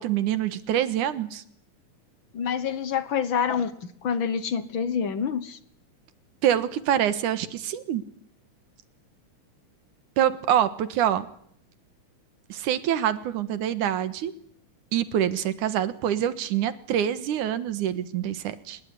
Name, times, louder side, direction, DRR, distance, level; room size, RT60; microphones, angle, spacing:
voice 1, 0.0-1.4 6.4-8.0 10.2-11.3 12.5-14.3 14.9-18.8, right 10 dB, 85° right, 13 dB, 2.9 m, -25 dB
voice 2, 2.3-3.7 4.0-5.6, left 7 dB, 55° left, 14 dB, 1.6 m, -27 dB
24.5 x 21.0 x 9.8 m, 0.67 s
omnidirectional pair, 3.5 m